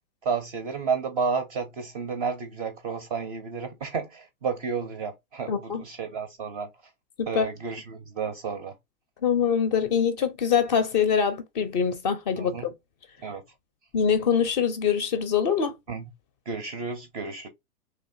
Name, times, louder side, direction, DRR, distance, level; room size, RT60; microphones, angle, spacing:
voice 1, 0.2-6.7 7.3-8.8 12.4-12.7 13.2-13.4 15.9-16.1 16.5-17.5, right 5 dB, 25° right, 0.4 m, -31 dB
voice 2, 5.5-5.8 7.2-7.5 9.2-12.7 13.9-15.7, left 7 dB, 30° left, 0.5 m, -24 dB
3.2 x 2.5 x 2.5 m
figure-of-eight pair, 110°, 47 cm